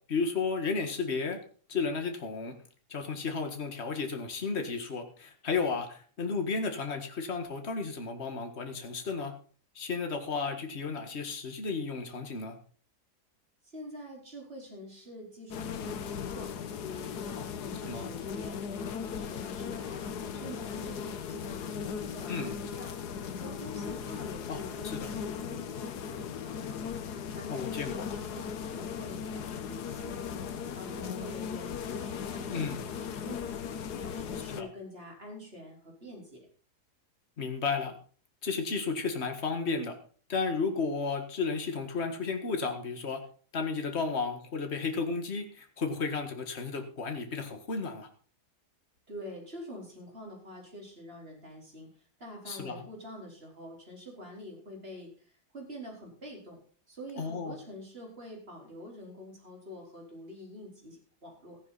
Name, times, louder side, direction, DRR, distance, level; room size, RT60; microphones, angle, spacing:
voice 1, 0.1-1.4 1.7-2.6 2.9-9.3 9.8-12.6 17.9-18.1 22.3-22.6 24.5-24.6 24.8-25.1 27.5-28.1 32.5-32.8 34.6-34.7 37.4-38.0 38.4-39.9 40.3-43.2 43.5-48.1 52.5-52.9 57.2-57.5, left 4 dB, 40° left, 6 dB, 2.0 m, -33 dB
voice 2, 13.6-16.5 16.8-22.9 23.4-26.9 27.3-30.4 30.7-33.7 34.0-36.5 49.1-51.9 52.2-56.6 56.9-61.6, left 1 dB, 35° right, -1 dB, 4.8 m, -46 dB
sound 1, 15.5-34.6, left 7 dB, 75° left, 1.5 m, -38 dB
14.5 x 11.5 x 4.1 m, 0.42 s
omnidirectional pair, 1.7 m